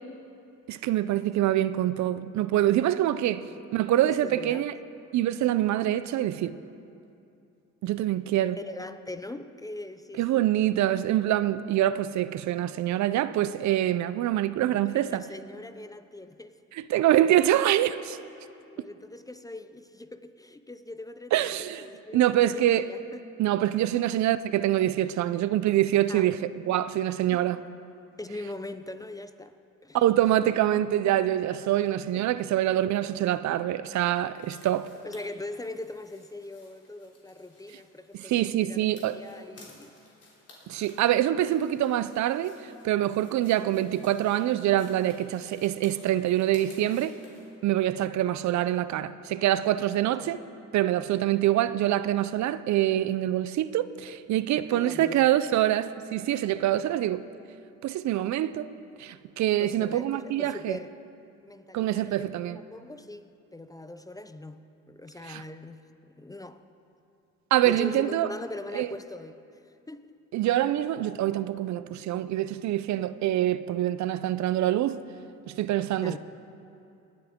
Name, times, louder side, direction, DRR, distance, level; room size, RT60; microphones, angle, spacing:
voice 1, 0.7-4.7 5.1-6.5 7.8-8.6 10.2-15.2 16.8-18.2 21.3-21.8 22.1-22.9 23.4-27.6 29.9-34.9 38.1-39.2 40.7-47.2 47.6-50.4 50.7-57.2 57.8-58.7 59.0-60.8 61.7-62.6 65.3-65.4 67.5-68.3 68.7-68.9 70.3-75.0 75.5-76.2, right 13 dB, 70° right, 0.5 m, -25 dB
voice 2, 4.2-4.6 8.6-10.5 14.7-16.6 18.8-21.5 21.8-23.2 26.1-26.3 27.3-27.4 28.2-29.6 29.8-30.0 32.1-32.3 35.0-40.0 50.2-50.3 54.7-55.3 59.6-60.9 61.4-66.6 67.6-70.1 76.0-76.2, left 2 dB, 10° left, 0.4 m, -41 dB
sound 1, 34.3-47.6, left 2 dB, 50° left, 3.4 m, -56 dB
19.0 x 10.5 x 3.6 m
cardioid pair, 90°, 30 cm